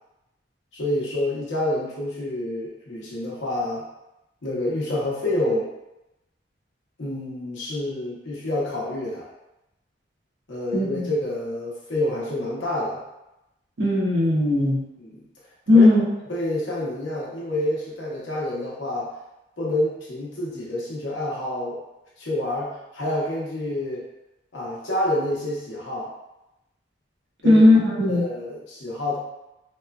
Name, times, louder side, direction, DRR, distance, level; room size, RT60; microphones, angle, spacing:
voice 1, 0.7-3.8 4.4-5.7 7.0-9.3 10.5-13.0 15.0-15.2 15.7-15.9 16.3-19.1 19.6-21.8 22.2-24.0 24.5-26.1 27.4-27.6 28.1-29.2, left 1 dB, 75° left, -5 dB, 0.8 m, -28 dB
voice 2, 10.7-11.1 13.8-14.8 15.7-16.0 27.4-28.2, left 2 dB, 70° right, -5 dB, 0.8 m, -17 dB
3.0 x 2.2 x 2.2 m, 0.93 s
head